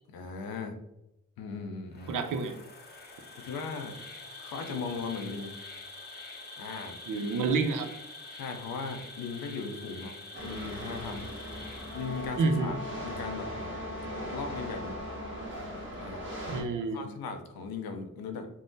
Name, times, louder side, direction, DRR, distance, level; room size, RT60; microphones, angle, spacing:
voice 1, 0.1-0.8 1.4-2.1 3.4-4.0 4.4-5.5 6.6-7.0 8.3-10.2 10.4-11.3 11.9-13.5 14.2-15.0 16.0-16.2 16.9-18.5, left 4 dB, 80° left, 5 dB, 0.5 m, -38 dB
Insect, 1.9-12.7, left 3 dB, 30° left, 0.7 m, -46 dB
voice 2, 2.1-2.6 7.1-7.9 12.4-12.8 16.5-17.1, right 4 dB, 60° right, 7 dB, 0.5 m, -29 dB
sound 1, 10.3-16.6, equal, 35° right, 1.0 m, -40 dB
Wind instrument woodwind instrument, 11.9-15.6, left 1 dB, 15° right, 1.4 m, -42 dB
3.5 x 2.0 x 2.6 m, 0.88 s
cardioid pair, 50°, 35 cm